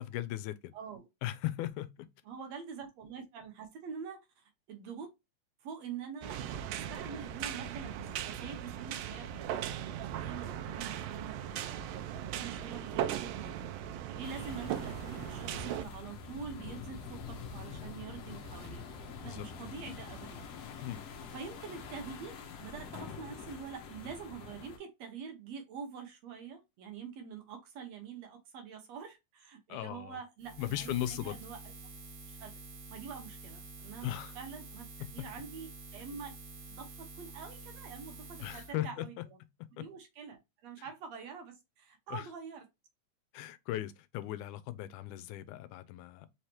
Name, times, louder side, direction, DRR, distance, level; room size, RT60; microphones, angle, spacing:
voice 1, 0.0-0.7 1.2-2.1 19.2-19.5 20.8-21.0 29.7-30.2 30.6-31.4 34.0-34.4 38.4-39.3 39.6-39.9 40.8-40.9 42.1-42.3 43.3-46.3, left 13 dB, 85° left, 2.0 m, -38 dB
voice 2, 0.7-1.1 2.3-5.1 5.6-6.4 6.7-7.9 8.2-9.5 10.1-13.7 14.1-18.9 19.2-20.5 21.3-31.6 32.3-32.5 32.9-34.1 34.4-34.9 35.1-36.3 36.7-39.1 39.7-42.7, right 6 dB, 70° right, 1.9 m, -45 dB
sound 1, 6.2-15.8, right 10 dB, 85° right, 1.4 m, -38 dB
sound 2, 14.2-24.8, left 5 dB, 70° left, 1.8 m, -46 dB
Buzz, 30.4-38.7, right 3 dB, 50° right, 1.6 m, -49 dB
5.1 x 3.2 x 2.8 m
omnidirectional pair, 3.5 m